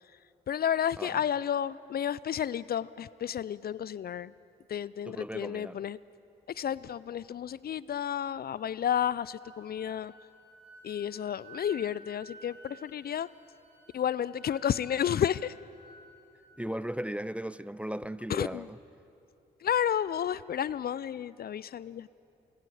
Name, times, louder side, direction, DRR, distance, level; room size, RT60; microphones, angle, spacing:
voice 1, 0.5-4.3 4.7-6.0 6.5-10.1 10.8-13.3 13.9-15.5 18.3-18.7 19.6-22.1, left 9 dB, 50° left, 0.4 m, -31 dB
voice 2, 5.1-5.8 16.6-18.8, right 1 dB, 5° right, 0.5 m, -36 dB
Wind instrument woodwind instrument, 9.4-17.1, right 2 dB, 75° right, 5.0 m, -54 dB
25.5 x 22.5 x 4.9 m
supercardioid pair, 50°, 20 cm